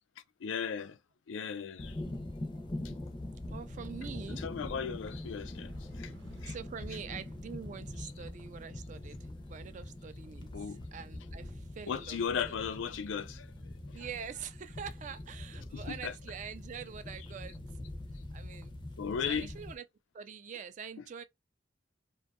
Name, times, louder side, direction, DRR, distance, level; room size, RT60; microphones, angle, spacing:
voice 1, 0.4-1.0 1.3-2.0 4.4-6.1 6.4-6.5 8.0-8.1 10.5-10.8 11.9-14.0 15.7-16.1 19.0-19.5, left 7 dB, 90° left, 0.4 m, -36 dB
sound 1, 1.8-19.8, left 1 dB, 25° left, 0.5 m, -43 dB
sound 2, 2.6-10.6 11.0-12.2, right 2 dB, 85° right, 0.7 m, -61 dB
voice 2, 3.5-4.4 6.4-12.6 13.9-17.6 18.3-18.7 19.3-19.8 20.1-21.2, right 7 dB, 40° right, 0.3 m, -45 dB
2.6 x 2.3 x 2.3 m
head